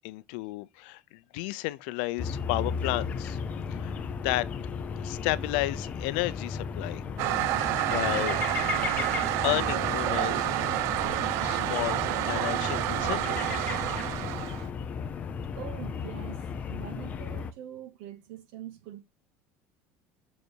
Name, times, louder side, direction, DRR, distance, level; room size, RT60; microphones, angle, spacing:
voice 1, 0.0-3.4 3.7-4.5 5.0-7.0 7.9-8.4 9.4-10.5 11.4-13.6, left 19 dB, 70° left, 0.6 m, -32 dB
sound 1, 2.2-17.5, left 6 dB, 25° left, 0.6 m, -35 dB
Toilet flush, 7.2-14.7, right 16 dB, 50° right, 0.4 m, -29 dB
voice 2, 15.6-19.0, right 11 dB, 70° right, 2.0 m, -43 dB
6.6 x 5.3 x 4.6 m
cardioid pair, 170°, 6 cm